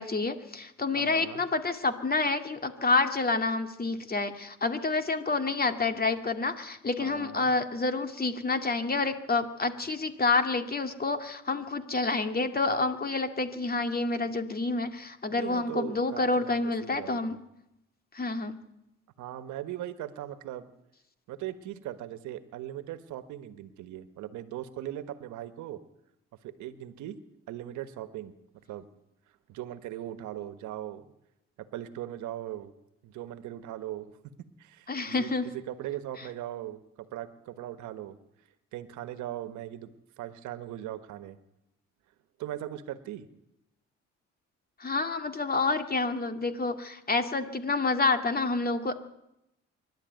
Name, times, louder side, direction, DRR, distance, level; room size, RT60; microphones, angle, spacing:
voice 1, 0.0-17.4 18.1-18.6 34.9-35.5 44.8-49.0, left 3 dB, 30° left, 8 dB, 2.3 m, -28 dB
voice 2, 0.9-1.4 7.0-7.5 15.3-17.4 19.2-20.7 21.3-25.8 26.4-27.2 27.5-28.3 28.7-28.9 29.5-31.1 31.6-32.7 33.0-34.1 34.6-38.2 38.7-39.9 40.2-41.4 42.4-43.3, right 12 dB, 85° right, 12 dB, 1.5 m, -39 dB
24.5 x 12.0 x 9.3 m, 0.86 s
supercardioid pair, 70°, 29 cm